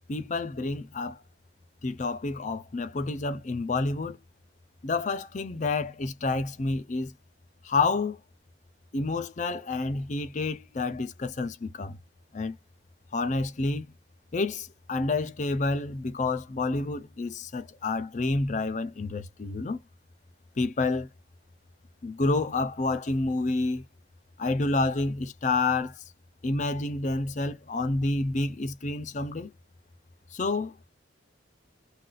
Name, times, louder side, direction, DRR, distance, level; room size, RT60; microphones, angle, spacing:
voice 1, 0.1-1.2 1.8-4.2 4.8-7.1 7.6-8.2 8.9-12.0 12.3-12.5 13.1-13.9 14.3-19.8 20.6-21.1 22.0-23.8 24.4-25.9 26.4-29.5 30.3-30.7, left 3 dB, 40° left, 0.5 m, -29 dB
2.3 x 2.2 x 3.9 m
head